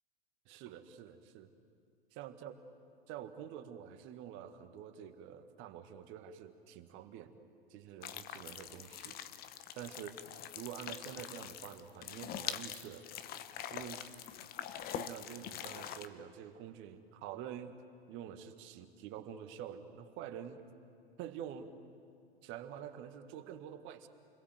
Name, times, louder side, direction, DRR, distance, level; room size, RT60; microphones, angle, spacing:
voice 1, 0.5-1.5 2.1-2.5 3.1-7.4 7.7-9.2 9.7-10.1 10.6-13.1 13.7-14.1 14.9-17.7 18.1-20.6 21.2-21.7 22.4-24.1, right 9 dB, 40° right, 8 dB, 1.9 m, -47 dB
sound 1, 8.0-16.1, left 10 dB, 30° left, 1.0 m, -44 dB
29.5 x 22.0 x 8.0 m, 2.6 s
figure-of-eight pair, 100°, 31 cm